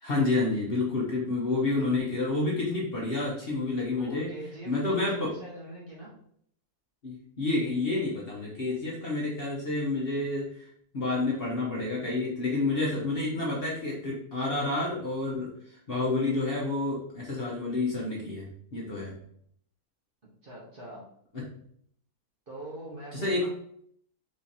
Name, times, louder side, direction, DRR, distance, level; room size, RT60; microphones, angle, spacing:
voice 1, 0.0-4.3 4.6-5.3 7.0-10.5 10.9-15.5 15.9-19.1 21.3-21.4 23.1-23.5, left 2 dB, 40° left, -4 dB, 1.1 m, -29 dB
voice 2, 4.0-6.1 20.4-21.0 22.5-23.5, right 1 dB, 35° right, -5 dB, 1.2 m, -43 dB
5.0 x 3.7 x 2.8 m, 0.66 s
omnidirectional pair, 1.8 m